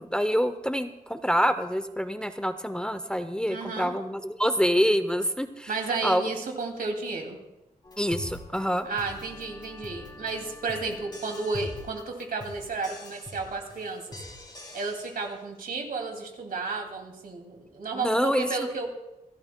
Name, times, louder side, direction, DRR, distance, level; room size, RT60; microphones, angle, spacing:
voice 1, 0.0-5.7 6.0-6.3 8.0-8.8 17.9-18.7, equal, 5° left, 9 dB, 0.6 m, -26 dB
voice 2, 3.5-3.9 5.7-7.4 8.8-14.0 14.7-18.9, right 4 dB, 80° right, 3 dB, 2.4 m, -32 dB
sound 1, 7.8-15.3, left 2 dB, 30° left, 2.9 m, -43 dB
27.5 x 12.5 x 2.2 m, 0.95 s
wide cardioid pair, 150°, 15 cm